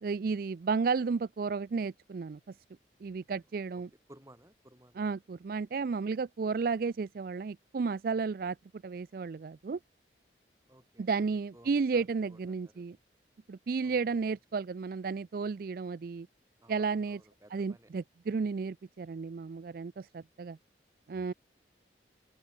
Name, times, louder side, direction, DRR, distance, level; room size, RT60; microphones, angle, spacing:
voice 1, 0.0-2.4 3.0-3.9 4.9-8.6 8.8-9.8 11.0-13.0 13.5-16.3 16.7-17.2 17.5-20.6 21.1-21.3, right 5 dB, 55° right, 0.4 m, -33 dB
voice 2, 4.1-5.0 10.7-11.3 11.5-12.8 13.8-14.3 16.6-17.9, right 1 dB, 15° right, 4.2 m, -58 dB
head